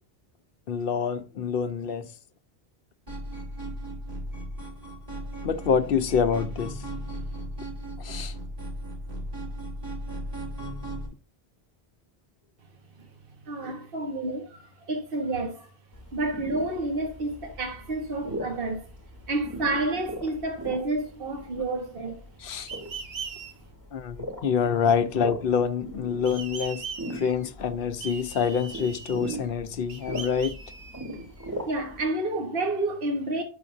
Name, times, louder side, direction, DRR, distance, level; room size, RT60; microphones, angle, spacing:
voice 1, 0.7-2.1 5.4-6.8 8.0-8.3 22.4-22.7 23.9-26.8 27.1-30.6, left 6 dB, 65° left, 0.8 m, -26 dB
sound 1, 3.1-11.1, right 1 dB, 40° right, 3.9 m, -36 dB
voice 2, 13.5-15.7 16.1-18.9 19.3-22.2 31.7-33.4, right 2 dB, 60° right, 1.4 m, -30 dB
sound 2, 15.9-32.0, right 1 dB, 15° right, 2.9 m, -40 dB
sound 3, 22.7-23.5 26.3-27.5 28.0-29.5 29.9-31.5, right 6 dB, 80° right, 1.4 m, -40 dB
9.9 x 7.0 x 2.6 m
omnidirectional pair, 1.0 m